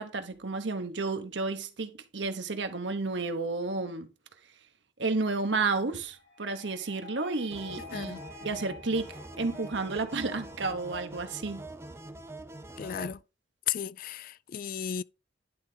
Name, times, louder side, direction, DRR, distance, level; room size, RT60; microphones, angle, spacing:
voice 1, 0.0-4.1 5.0-11.7, right 3 dB, 90° right, 1.1 m, -32 dB
sound 1, 6.1-11.1, left 5 dB, 70° left, 5.1 m, -50 dB
sound 2, 7.5-13.2, right 2 dB, 15° right, 0.6 m, -44 dB
voice 2, 7.9-8.2 12.8-13.2 13.7-15.0, left 9 dB, 50° left, 0.3 m, -34 dB
10.5 x 3.9 x 3.9 m
head